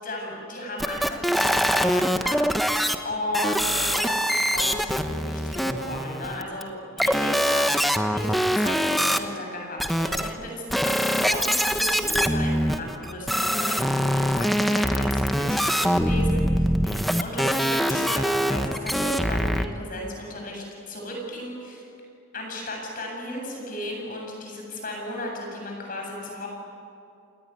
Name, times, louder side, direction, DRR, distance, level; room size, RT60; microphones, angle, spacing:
voice 1, 0.0-6.7 7.0-21.8 22.3-26.5, left 1 dB, 45° left, 0 dB, 8.0 m, -35 dB
sound 1, 0.8-3.0 3.3-6.6 7.0-9.2 9.8-10.3 10.7-19.7, equal, ahead, 1.1 m, -24 dB
29.0 x 19.0 x 9.6 m, 2.5 s
head